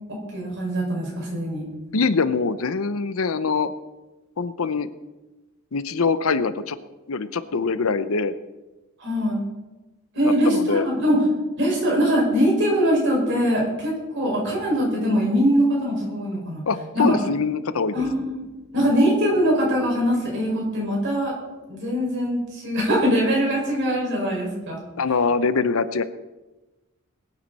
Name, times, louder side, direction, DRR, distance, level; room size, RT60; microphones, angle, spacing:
voice 1, 0.1-1.6 9.0-9.4 10.2-11.2 11.6-16.6 16.9-17.1 17.9-18.3 18.7-21.3 21.7-24.8, equal, 55° right, -2 dB, 5.8 m, -22 dB
voice 2, 1.9-3.7 4.4-4.9 5.7-6.8 7.1-8.3 10.2-10.9 16.7-18.0 18.8-18.9 25.0-26.0, left 4 dB, 75° left, 13 dB, 0.7 m, -23 dB
21.5 x 9.3 x 4.2 m, 1.1 s
head